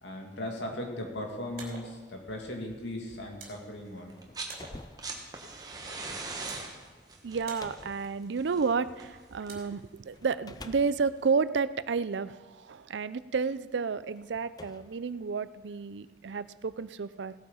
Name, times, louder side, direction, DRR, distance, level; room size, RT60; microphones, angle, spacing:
voice 1, 0.0-4.2, left 1 dB, 80° left, 1 dB, 2.4 m, -38 dB
sound 1, 1.3-10.3, right 3 dB, 50° right, 3.1 m, -52 dB
sound 2, 4.1-9.5 10.1-12.6 13.4-13.5 14.2-15.8, left 2 dB, 20° left, 0.5 m, -51 dB
sound 3, 4.1-4.6 4.8-9.7 11.0-11.1, right 3 dB, 20° right, 1.3 m, -41 dB
voice 2, 7.2-17.3, right 5 dB, 80° right, 16 dB, 0.5 m, -31 dB
17.0 x 8.5 x 5.7 m, 1.3 s
head